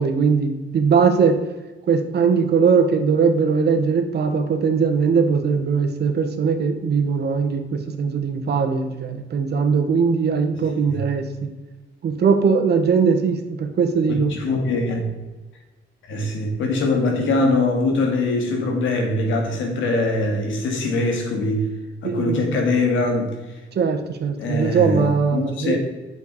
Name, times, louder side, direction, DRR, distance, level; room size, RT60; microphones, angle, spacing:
voice 1, 0.0-1.4 1.9-11.5 12.0-14.3 22.0-22.4 23.7-25.8, right 5 dB, 55° right, 6 dB, 1.3 m, -20 dB
voice 2, 14.3-15.1 16.1-21.7 22.0-23.3 24.3-25.8, left 2 dB, 75° left, 2 dB, 2.2 m, -22 dB
8.2 x 6.7 x 4.1 m, 1.2 s
cardioid pair, 90°, 20 cm